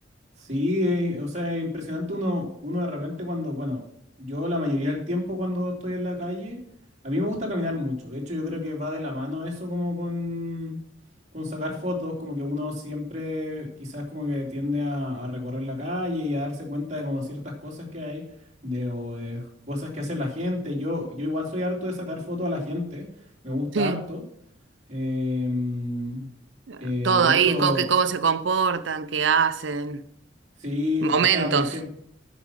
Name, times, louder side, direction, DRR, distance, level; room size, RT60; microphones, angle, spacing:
voice 1, 0.4-3.8 4.2-6.6 7.0-10.8 11.3-18.2 18.6-23.1 23.4-24.2 24.9-26.3 26.8-27.9 30.6-31.9, left 2 dB, 40° right, 3.1 m, -29 dB
voice 2, 26.7-30.0 31.0-31.7, right 6 dB, 70° right, 0.7 m, -23 dB
10.0 x 6.1 x 7.5 m
head